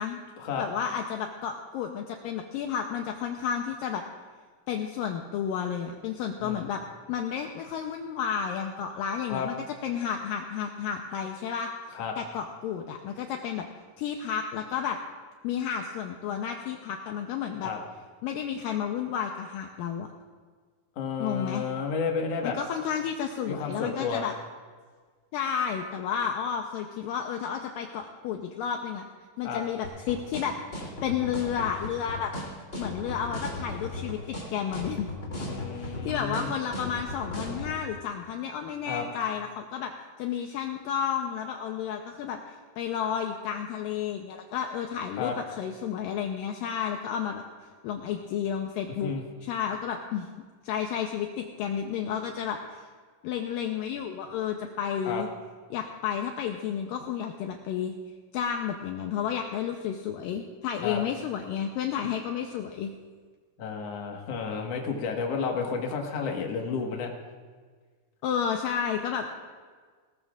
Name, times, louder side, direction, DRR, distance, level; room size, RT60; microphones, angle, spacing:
voice 1, 0.6-4.0 4.7-6.8 7.1-9.6 9.8-11.7 12.2-13.7 14.0-15.0 15.4-17.7 18.2-20.1 21.2-21.6 22.4-24.3 25.3-29.0 29.4-32.3 32.8-35.1 35.8-39.9 40.2-47.4 47.8-49.1 49.4-50.3 50.6-52.9 53.2-55.3 55.7-57.9 58.3-62.9 68.2-69.4, left 8 dB, 80° left, 3 dB, 2.1 m, -31 dB
voice 2, 21.0-22.6 23.5-24.3 29.4-29.6 35.4-36.5 38.9-39.1 45.2-45.4 49.0-49.2 55.1-55.2 60.8-61.0 63.6-67.1, left 5 dB, 55° left, 1 dB, 2.0 m, -31 dB
sound 1, 29.8-37.7, left 1 dB, 20° left, 2.8 m, -36 dB
20.0 x 18.5 x 2.5 m, 1.5 s
omnidirectional pair, 4.7 m